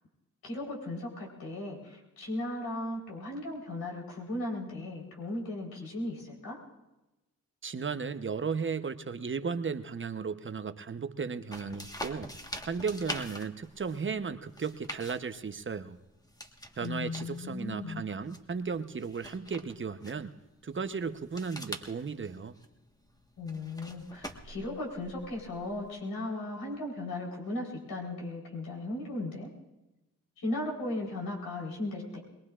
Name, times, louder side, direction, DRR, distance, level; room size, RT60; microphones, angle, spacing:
voice 1, 0.4-6.6 16.8-18.0 23.4-29.5 30.4-32.2, left 2 dB, 75° left, -2 dB, 4.1 m, -36 dB
voice 2, 7.6-12.3 12.7-16.0 16.8-20.3 20.6-22.5, right 5 dB, 35° right, 10 dB, 0.9 m, -35 dB
page turns, 11.5-25.9, equal, 10° left, 1.5 m, -46 dB
22.0 x 21.0 x 2.5 m, 1.0 s
supercardioid pair, 55°, 35 cm